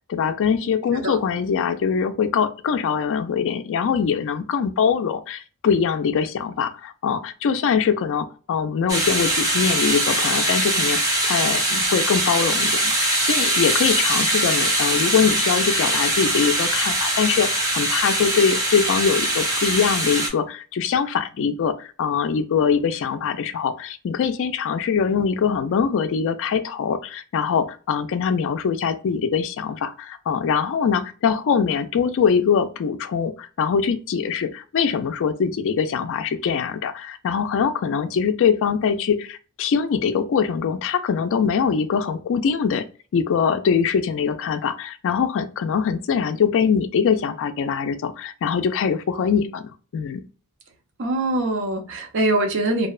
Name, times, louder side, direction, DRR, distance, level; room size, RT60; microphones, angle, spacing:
voice 1, 0.1-42.8 43.1-50.2, left 6 dB, 60° left, 0.3 m, -23 dB
sound 1, 8.9-20.3, right 1 dB, 15° right, 0.7 m, -22 dB
voice 2, 51.0-52.9, right 2 dB, 55° right, 0.6 m, -23 dB
2.6 x 2.1 x 2.3 m
head